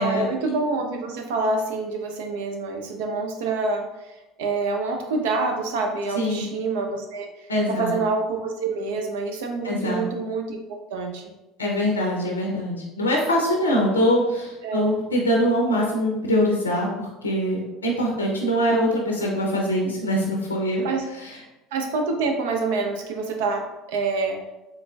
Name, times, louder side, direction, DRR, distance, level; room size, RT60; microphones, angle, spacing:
voice 1, 0.0-4.1 4.4-11.2 14.6-14.9 20.8-21.0 21.7-24.4, right 3 dB, 70° right, 3 dB, 0.5 m, -27 dB
voice 2, 6.1-6.5 7.5-7.9 9.6-10.0 11.6-20.8 21.1-21.4, equal, 90° left, -1 dB, 0.5 m, -23 dB
3.7 x 3.2 x 2.3 m, 0.99 s
hypercardioid pair, 65°, 0 cm